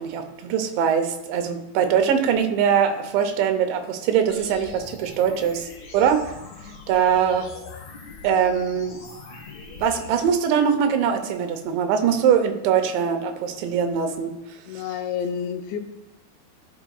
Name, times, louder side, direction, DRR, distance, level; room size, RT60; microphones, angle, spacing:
voice 1, 0.0-6.3 6.9-7.5 8.2-9.0 9.7-14.3 14.7-14.8, right 8 dB, 85° right, 7 dB, 3.2 m, -22 dB
sound 1, 4.3-10.3, left 4 dB, 50° left, 2.7 m, -42 dB
voice 2, 14.7-15.8, left 7 dB, 90° left, 5 dB, 3.1 m, -29 dB
14.5 x 6.9 x 2.3 m, 0.93 s
omnidirectional pair, 5.1 m